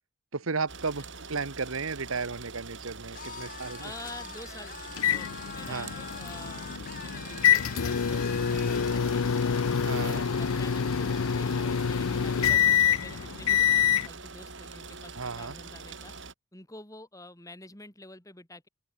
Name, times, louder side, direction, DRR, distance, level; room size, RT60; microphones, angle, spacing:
voice 1, 0.3-3.9 5.6-5.9 9.8-10.3 15.2-15.6, right 4 dB, 80° right, 1.2 m, -34 dB
sound 1, 0.7-16.3, right 4 dB, 60° right, 7.2 m, -44 dB
sound 2, 3.1-9.1, left 8 dB, 40° left, 0.9 m, -44 dB
voice 2, 3.8-6.7 7.0-9.5 9.9-16.1 16.5-18.7, left 2 dB, 15° left, 3.3 m, -48 dB
sound 3, 5.0-14.1, left 8 dB, 85° left, 0.5 m, -26 dB
open air
head